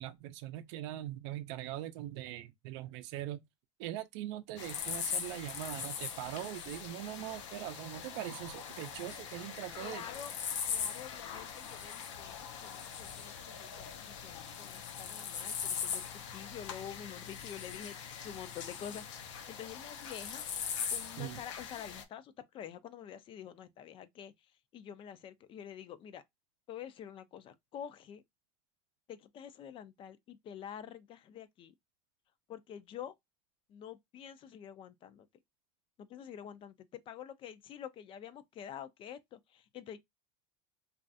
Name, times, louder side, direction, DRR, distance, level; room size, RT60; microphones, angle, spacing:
voice 1, 0.0-3.4 3.8-10.0 21.2-21.4, right 13 dB, 70° right, 0.5 m, -41 dB
sound 1, 4.6-22.0, left 7 dB, 90° left, 0.7 m, -41 dB
voice 2, 9.8-10.4 10.7-20.4 20.9-24.3 24.7-26.2 26.7-28.2 29.1-31.7 32.5-33.1 33.7-35.3 36.0-40.0, left 9 dB, 35° left, 0.4 m, -47 dB
3.1 x 2.4 x 2.5 m
supercardioid pair, 130°, 15 cm